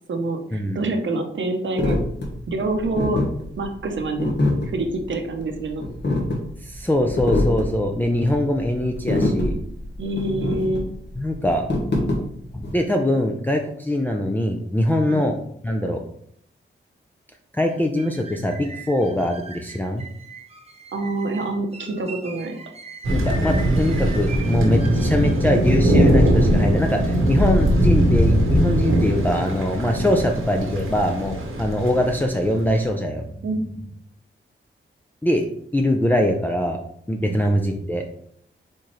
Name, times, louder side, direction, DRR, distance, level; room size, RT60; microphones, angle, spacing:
voice 1, 0.1-2.0 2.5-3.2 3.6-4.4 4.6-5.8 10.0-10.9 15.1-15.3 20.9-22.5 30.0-30.3 33.4-33.6 37.2-37.5, right 2 dB, 65° right, 5 dB, 0.8 m, -26 dB
sound 1, 1.8-12.7, left 2 dB, 55° left, 1.2 m, -25 dB
voice 2, 6.6-9.5 11.2-11.7 12.5-15.4 15.6-16.0 17.5-20.0 23.1-33.5 35.2-35.4 35.7-36.8 37.1-38.1, left 1 dB, 10° left, 1 dB, 0.5 m, -22 dB
sound 2, 17.7-25.5, right 3 dB, 30° right, 0.8 m, -41 dB
Thunder, 23.0-32.8, equal, 85° right, 1.2 m, -20 dB
4.4 x 3.7 x 3.1 m, 0.67 s
cardioid pair, 75°, 21 cm